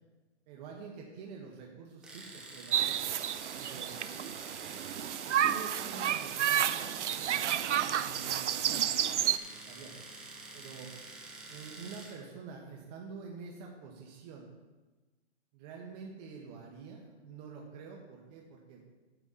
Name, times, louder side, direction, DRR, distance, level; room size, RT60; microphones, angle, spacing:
voice 1, 0.5-3.1 3.5-4.0 5.2-7.5 7.8-10.0 10.5-10.9 11.5-14.5 15.5-18.8, right 5 dB, 35° right, -1 dB, 1.4 m, -47 dB
Domestic sounds home sounds, 2.0-12.2, right 2 dB, ahead, 0.4 m, -48 dB
sound 1, 2.7-9.4, right 10 dB, 85° right, 0.5 m, -31 dB
9.9 x 4.7 x 7.0 m, 1.2 s
hypercardioid pair, 135°, 35 cm